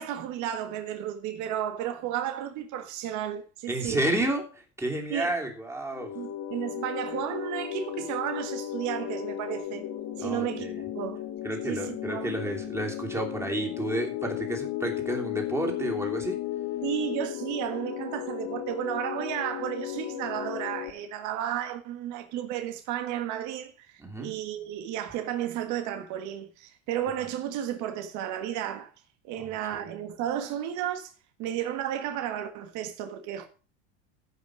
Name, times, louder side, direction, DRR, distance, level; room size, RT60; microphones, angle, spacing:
voice 1, 0.0-4.0 5.1-5.3 6.1-9.8 10.2-11.2 11.6-12.4 16.8-28.9 29.2-31.1 31.4-33.5, right 10 dB, 55° right, 1.7 m, -33 dB
voice 2, 3.7-6.2 10.2-10.8 11.4-16.4 24.0-24.3 29.4-29.8, right 1 dB, 5° right, 3.1 m, -31 dB
sound 1, 5.9-20.9, left 12 dB, 45° left, 2.0 m, -35 dB
15.0 x 5.9 x 6.3 m
supercardioid pair, 135°, 36 cm